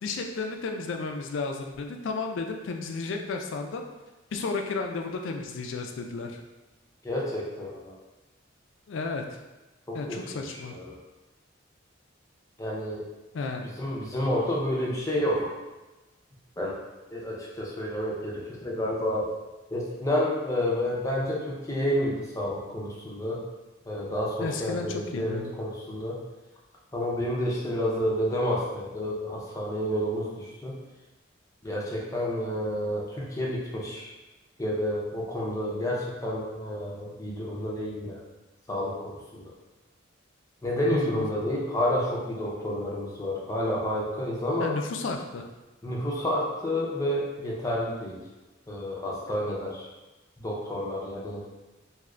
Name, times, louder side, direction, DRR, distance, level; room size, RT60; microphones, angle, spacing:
voice 1, 0.0-3.9 4.3-6.4 8.9-9.2 9.9-10.8 13.3-13.7 24.4-25.5 40.9-41.2 44.6-45.4, left 4 dB, 70° left, 3 dB, 0.4 m, -33 dB
voice 2, 7.0-7.9 9.9-10.4 10.7-11.0 12.6-13.0 13.8-15.5 16.6-16.8 17.1-19.3 19.7-23.4 23.9-26.2 26.9-30.8 31.6-34.1 34.6-38.2 38.7-39.5 40.6-44.7 45.8-48.2 48.7-49.9 50.4-51.5, left 1 dB, 15° left, -4 dB, 0.6 m, -30 dB
2.7 x 2.4 x 3.2 m, 1.1 s
head